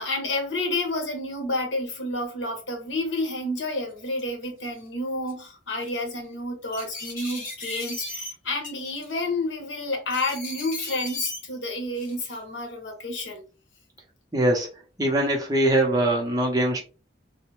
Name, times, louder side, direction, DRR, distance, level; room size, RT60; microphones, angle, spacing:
voice 1, 0.0-13.4, left 2 dB, 80° left, 0.9 m, -30 dB
sound 1, 3.2-3.3 3.9-4.4 5.3-5.4 5.8-6.0 6.7-8.3 8.6-9.2 10.1-11.4 12.0-12.4, left 2 dB, 50° left, 1.2 m, -36 dB
voice 2, 14.3-14.7 15.0-16.8, right 1 dB, 20° right, 0.7 m, -22 dB
3.2 x 2.1 x 3.1 m
head